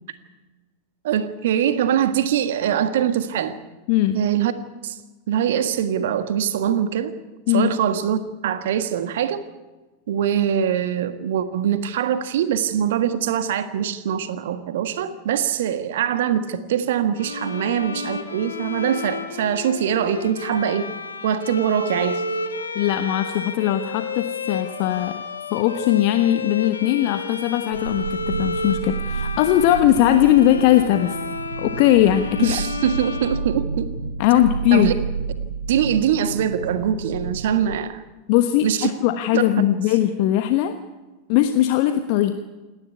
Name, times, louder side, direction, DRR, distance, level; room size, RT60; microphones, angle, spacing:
voice 1, 1.0-3.6 4.1-4.5 4.8-4.9 5.3-7.1 7.5-9.4 10.1-20.9 21.2-22.2 32.4-33.9 34.7-34.9 35.7-38.0 38.6-38.9 39.3-39.4, right 9 dB, 55° right, 10 dB, 1.6 m, -23 dB
Bowed string instrument, 17.2-34.2, left 4 dB, 75° left, 1.8 m, -31 dB
voice 2, 22.7-25.2 25.5-31.2 31.6-32.6 34.2-34.9 38.3-40.7 41.3-42.5, left 12 dB, 45° left, 8 dB, 1.2 m, -19 dB
sound 1, 27.7-37.8, right 5 dB, 75° right, 0.8 m, -30 dB
28.0 x 11.5 x 9.6 m, 1.2 s
figure-of-eight pair, 90°, 0 cm